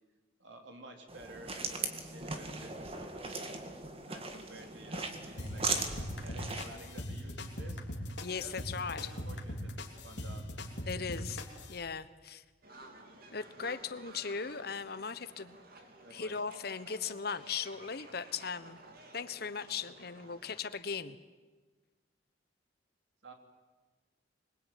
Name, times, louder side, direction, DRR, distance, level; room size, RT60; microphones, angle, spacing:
voice 1, 0.4-3.7 4.1-7.8 8.3-8.6 9.0-9.7 10.0-10.5 16.0-16.3 23.2-23.3, right 2 dB, 85° right, 3 dB, 3.8 m, -52 dB
sound 1, 1.1-6.8, right 3 dB, 30° right, 2.2 m, -38 dB
sound 2, 5.4-11.8, left 1 dB, 75° left, 3.0 m, -41 dB
voice 2, 8.2-9.1 10.9-11.4 11.7-12.4 13.3-15.6 16.1-18.8 19.1-21.2, left 5 dB, 60° left, 13 dB, 1.1 m, -38 dB
sound 3, 12.6-20.6, right 2 dB, 55° right, 3.1 m, -54 dB
25.0 x 21.5 x 9.3 m, 1.3 s
head